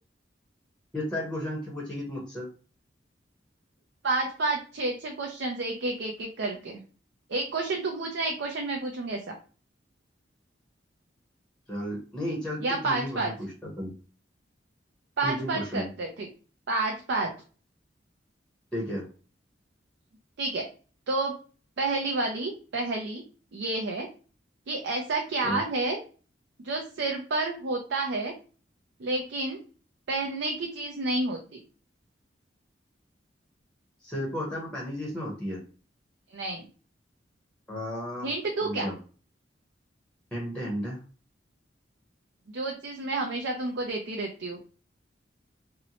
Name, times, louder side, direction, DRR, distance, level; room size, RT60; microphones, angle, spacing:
voice 1, 0.9-2.5 11.7-13.9 15.2-15.9 18.7-19.1 25.4-25.6 34.0-35.6 37.7-38.3 38.6-39.0 40.3-41.0, equal, 5° left, -3 dB, 0.7 m, -33 dB
voice 2, 4.0-6.8 7.3-9.3 12.6-13.3 15.2-16.3 16.7-17.3 20.4-20.6 21.1-21.3 21.8-23.2 23.5-24.1 24.7-26.0 26.6-28.3 29.0-29.6 30.1-31.6 36.3-36.6 38.2-38.9 42.5-44.6, right 2 dB, 75° right, 1 dB, 0.5 m, -30 dB
2.7 x 2.1 x 2.7 m, 0.38 s
head